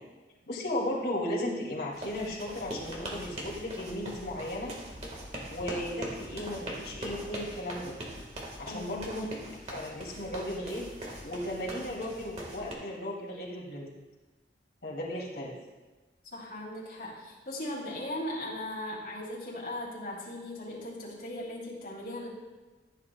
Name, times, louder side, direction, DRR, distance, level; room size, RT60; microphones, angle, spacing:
voice 1, 0.5-4.7 5.5-8.0 8.6-9.3 9.6-13.9 14.8-15.5, left 1 dB, 70° left, -4 dB, 2.6 m, -35 dB
sound 1, 1.9-12.7, right 1 dB, 35° right, 1.7 m, -42 dB
voice 2, 8.6-9.0 16.3-22.3, left 1 dB, 50° left, -6 dB, 3.4 m, -38 dB
14.5 x 8.6 x 2.3 m, 1.2 s
head